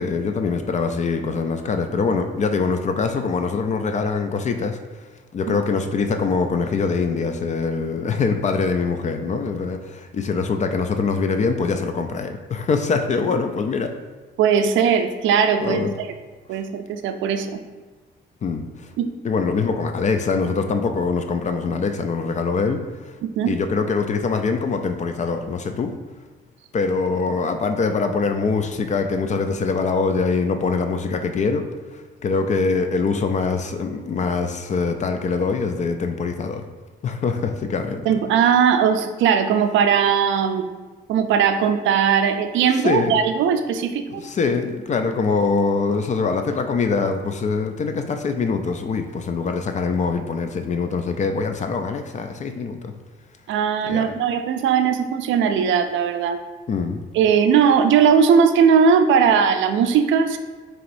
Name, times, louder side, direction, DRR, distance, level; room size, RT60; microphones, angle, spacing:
voice 1, 0.0-4.8 5.3-13.9 15.6-15.9 16.5-16.6 18.4-18.9 19.2-23.2 23.5-25.9 26.7-36.6 37.0-38.1 42.7-43.2 44.1-52.9 53.9-54.1 56.7-57.0, left 4 dB, 35° left, 6 dB, 0.4 m, -23 dB
voice 2, 14.4-16.1 16.5-17.6 19.0-19.1 23.2-23.5 38.1-40.7 41.1-44.2 53.5-56.4 57.1-60.4, right 7 dB, 75° right, 8 dB, 0.4 m, -19 dB
4.7 x 3.0 x 2.5 m, 1.3 s
cardioid pair, 90°, 20 cm